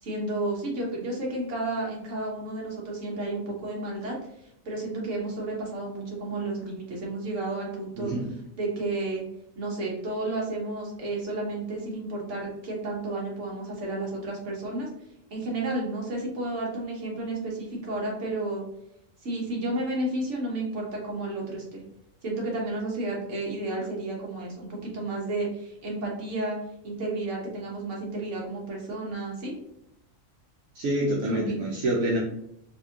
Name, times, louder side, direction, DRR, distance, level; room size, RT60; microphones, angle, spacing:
voice 1, 0.0-4.1 4.6-8.1 8.6-9.2 9.6-14.9 15.3-18.6 19.2-21.8 22.2-26.6 26.8-29.5 31.3-31.7, right 2 dB, 60° right, -3 dB, 1.4 m, -32 dB
voice 2, 8.0-8.3 30.7-32.2, right 1 dB, 75° right, -4 dB, 1.1 m, -27 dB
4.1 x 2.5 x 2.8 m, 0.78 s
omnidirectional pair, 1.5 m